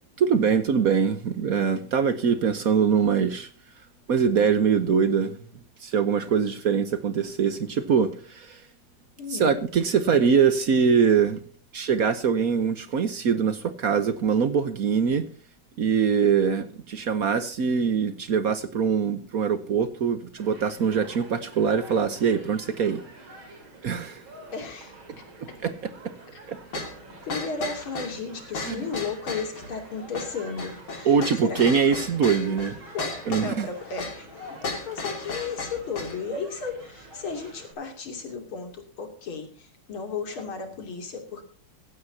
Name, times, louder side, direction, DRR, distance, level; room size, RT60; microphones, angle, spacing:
voice 1, 0.2-3.5 4.1-5.4 5.8-8.6 9.3-11.4 11.7-15.3 15.8-23.0 23.8-24.2 25.4-26.1 26.5-26.8 28.6-28.8 31.0-32.8 33.3-33.7, right 6 dB, 55° right, 1.2 m, -23 dB
voice 2, 9.2-9.5 24.5-25.0 27.3-31.7 32.9-34.3 34.6-41.4, left 5 dB, 85° left, 3.7 m, -34 dB
Human group actions, 20.4-37.7, right 2 dB, 75° right, 4.5 m, -47 dB
sound 1, 26.7-36.2, left 3 dB, 70° left, 3.1 m, -35 dB
16.0 x 15.5 x 2.8 m
omnidirectional pair, 2.2 m